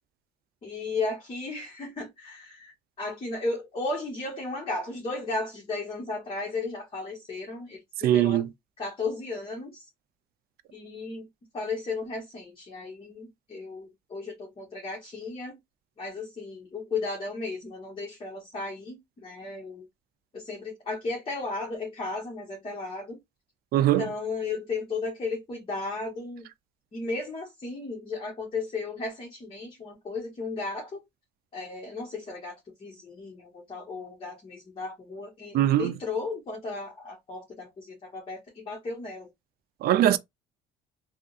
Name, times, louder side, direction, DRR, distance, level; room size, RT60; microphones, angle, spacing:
voice 1, 0.6-8.4 8.8-9.8 10.7-11.3 11.5-15.6 16.0-19.8 20.3-23.2 23.7-26.5 26.9-31.0 31.5-39.3, left 3 dB, 35° left, 1.4 m, -35 dB
voice 2, 8.0-8.5 23.7-24.1 35.5-35.9 39.8-40.2, right 12 dB, 65° right, 0.4 m, -21 dB
3.5 x 2.4 x 2.6 m
cardioid pair, 110°, 17 cm